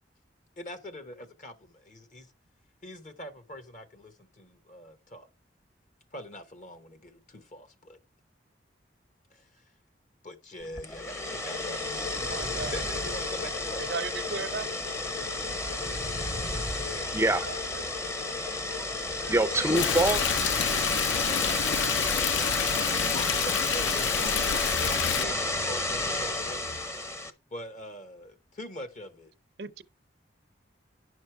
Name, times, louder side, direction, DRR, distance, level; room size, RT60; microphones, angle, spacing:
voice 1, 0.6-2.3 2.8-5.3 6.1-8.0 9.3-9.6 10.2-14.0 16.8-17.6 21.5-21.6 22.9-24.4 24.8-26.6 27.5-29.3, left 1 dB, 45° left, 1.0 m, -43 dB
sound 1, 10.8-27.3, left 2 dB, 15° left, 0.8 m, -31 dB
voice 2, 12.2-12.8 13.8-14.7 17.5-17.8 18.2-18.3 29.6-29.8, right 4 dB, 60° right, 0.6 m, -36 dB
voice 3, 17.0-17.5 18.0-18.2 18.7-20.4 21.0-21.5, right 2 dB, 15° right, 0.5 m, -28 dB
Stream, 19.7-25.2, left 10 dB, 75° left, 0.4 m, -29 dB
9.8 x 6.4 x 4.5 m
head